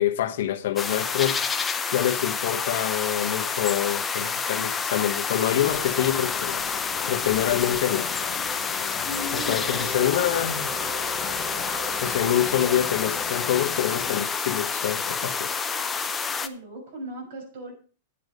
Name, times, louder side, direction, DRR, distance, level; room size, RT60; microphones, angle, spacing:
voice 1, 0.0-1.4 1.9-6.6 7.1-8.1 9.3-10.7 12.0-15.5, left 11 dB, 65° left, 1.3 m, -26 dB
sound 1, 0.8-16.5, left 5 dB, 10° left, 0.7 m, -29 dB
sound 2, 5.5-14.3, left 12 dB, 40° left, 1.1 m, -38 dB
voice 2, 9.0-9.8 16.4-17.7, left 1 dB, 70° right, 6.9 m, -37 dB
Organ, 9.1-13.6, right 7 dB, 25° right, 0.6 m, -41 dB
10.5 x 9.8 x 5.1 m
supercardioid pair, 155°, 0 cm